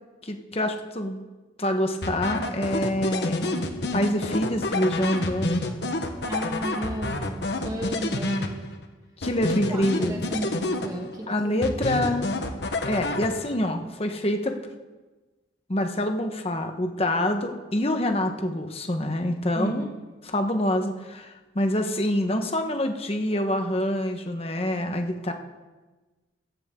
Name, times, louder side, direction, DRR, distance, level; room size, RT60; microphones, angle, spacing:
voice 1, 0.2-1.2 1.6-3.7 3.9-5.6 9.2-10.2 11.3-12.3 12.8-14.5 15.7-19.9 20.3-25.3, left 1 dB, 30° left, 5 dB, 1.3 m, -26 dB
sound 1, 2.0-8.9 9.2-11.2 11.6-13.7, left 2 dB, 60° left, 1.2 m, -29 dB
voice 2, 6.3-8.5 9.5-11.7 19.5-19.9, right 1 dB, 20° right, 2 dB, 1.3 m, -33 dB
16.5 x 14.5 x 3.8 m, 1.2 s
head